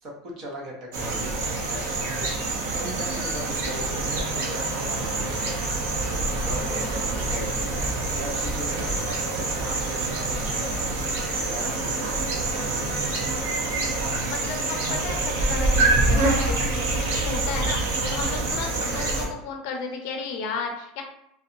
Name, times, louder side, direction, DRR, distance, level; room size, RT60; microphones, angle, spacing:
voice 1, 0.0-5.6 6.2-10.8 11.2-13.2, equal, 40° right, 0 dB, 0.6 m, -39 dB
sound 1, 0.9-19.3, right 2 dB, 90° right, 0.7 m, -26 dB
voice 2, 14.2-21.0, left 4 dB, 55° left, 3 dB, 0.5 m, -33 dB
2.7 x 2.2 x 2.5 m, 0.77 s
supercardioid pair, 175°, 0 cm